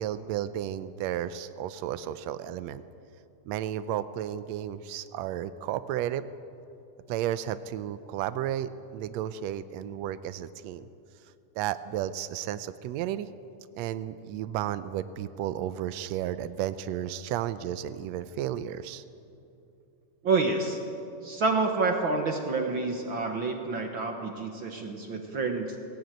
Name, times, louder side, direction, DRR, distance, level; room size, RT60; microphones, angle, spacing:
voice 1, 0.0-2.8 3.5-6.3 7.1-10.9 11.5-13.3 13.7-19.0, right 11 dB, 90° right, 13 dB, 1.5 m, -33 dB
voice 2, 20.2-20.8 21.2-25.8, right 3 dB, 55° right, 3 dB, 1.5 m, -28 dB
20.0 x 17.0 x 9.1 m, 2.7 s
omnidirectional pair, 3.8 m